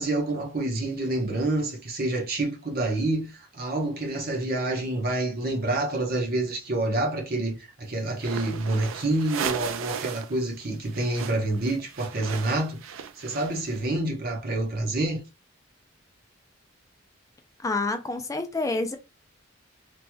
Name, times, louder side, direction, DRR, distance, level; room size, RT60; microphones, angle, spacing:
voice 1, 0.0-15.2, right 2 dB, 45° right, 0.9 m, -28 dB
sound 1, 8.1-10.4 10.6-13.8, right 7 dB, 70° right, 0.4 m, -36 dB
voice 2, 17.6-19.0, left 3 dB, 15° left, 0.4 m, -28 dB
3.1 x 2.9 x 2.2 m
head